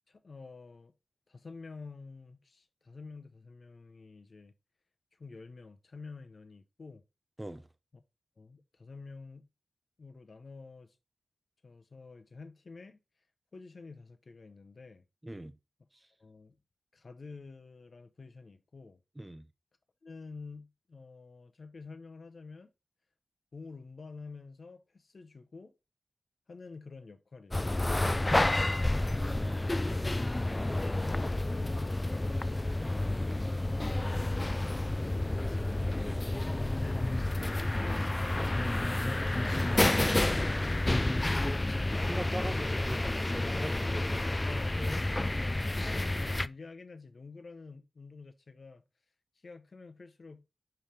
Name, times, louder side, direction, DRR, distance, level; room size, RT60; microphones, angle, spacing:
voice 1, 0.1-0.9 1.3-4.5 5.2-7.0 7.9-8.0 8.4-9.5 10.0-10.9 11.6-13.0 13.5-15.0 16.2-16.5 16.9-19.0 20.0-22.7 23.5-25.7 26.5-28.7 30.7-34.0 34.7-35.7 36.6-37.4 38.4-40.2 40.9-41.3 44.4-48.8 49.4-50.4, left 4 dB, 55° left, 0.9 m, -49 dB
voice 2, 15.2-15.6 15.9-16.1 19.2-19.5 29.1-30.0 40.9-41.6 42.1-44.1, right 1 dB, 15° right, 0.7 m, -42 dB
sound 1, 27.5-46.5, left 2 dB, 20° left, 0.3 m, -30 dB
5.8 x 5.5 x 3.3 m
wide cardioid pair, 70°, 0 cm